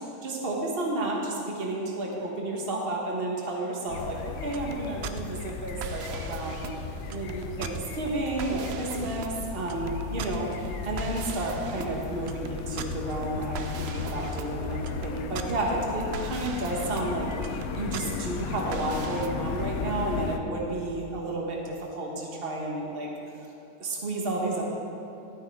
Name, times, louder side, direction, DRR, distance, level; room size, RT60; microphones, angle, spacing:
voice 1, 0.0-6.7 7.1-23.1 23.8-24.6, right 2 dB, 40° right, -1 dB, 1.4 m, -31 dB
sound 1, 3.9-20.4, left 6 dB, 80° left, 1.1 m, -35 dB
sound 2, 4.4-19.3, right 7 dB, 65° right, 0.6 m, -40 dB
12.5 x 9.1 x 3.6 m, 2.8 s
omnidirectional pair, 1.5 m